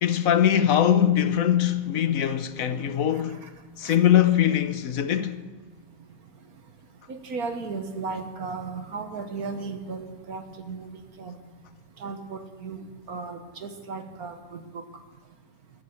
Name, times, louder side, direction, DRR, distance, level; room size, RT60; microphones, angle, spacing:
voice 1, 0.0-3.5 3.8-5.4, left 10 dB, 60° left, 1.0 m, -22 dB
voice 2, 3.1-3.5 3.8-4.0 7.1-10.9 11.2-11.3 12.0-12.8 13.1-14.6, right 4 dB, 60° right, 1.6 m, -35 dB
14.5 x 13.5 x 7.1 m
omnidirectional pair, 1.9 m